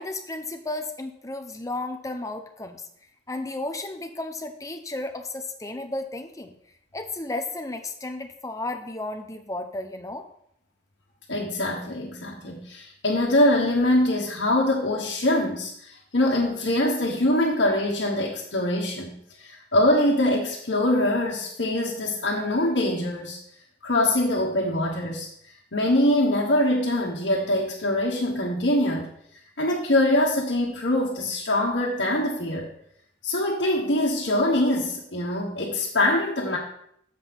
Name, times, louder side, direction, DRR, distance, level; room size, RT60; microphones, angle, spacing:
voice 1, 0.0-2.8 3.3-6.5 6.9-10.2, left 2 dB, 20° left, 6 dB, 0.8 m, -33 dB
voice 2, 11.3-23.4 23.8-25.3 25.7-29.1 29.6-32.7 33.2-36.6, left 1 dB, 65° left, -5 dB, 1.5 m, -23 dB
7.4 x 5.6 x 6.1 m, 0.68 s
head